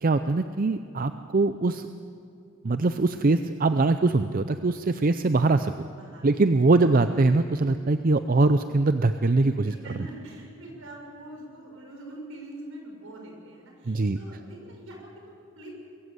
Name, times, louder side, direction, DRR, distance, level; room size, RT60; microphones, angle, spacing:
voice 1, 0.0-1.9 2.6-5.7 6.2-9.7 13.9-14.2, right 3 dB, 40° right, 10 dB, 0.5 m, -22 dB
voice 2, 5.9-6.4 9.4-15.7, right 1 dB, 75° right, 0 dB, 6.4 m, -44 dB
21.5 x 15.5 x 8.0 m, 2.5 s
head